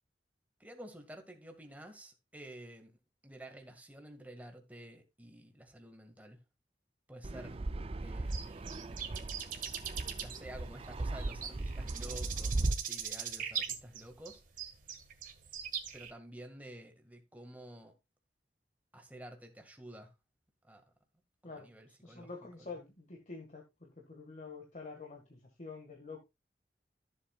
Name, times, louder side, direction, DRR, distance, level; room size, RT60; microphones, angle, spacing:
voice 1, 0.6-2.9 3.2-6.4 7.1-7.6 8.0-8.4 9.4-9.8 10.1-14.4 15.9-17.9 18.9-20.1 20.6-20.8 21.4-22.3 22.6-22.8, right 1 dB, 10° right, 1.9 m, -51 dB
Fixed-wing aircraft airplane, 7.2-12.7, right 2 dB, 35° right, 0.5 m, -37 dB
sound 1, 8.3-16.1, right 8 dB, 50° right, 1.7 m, -41 dB
voice 2, 21.4-26.2, left 4 dB, 45° left, 1.8 m, -48 dB
14.0 x 7.6 x 2.4 m
head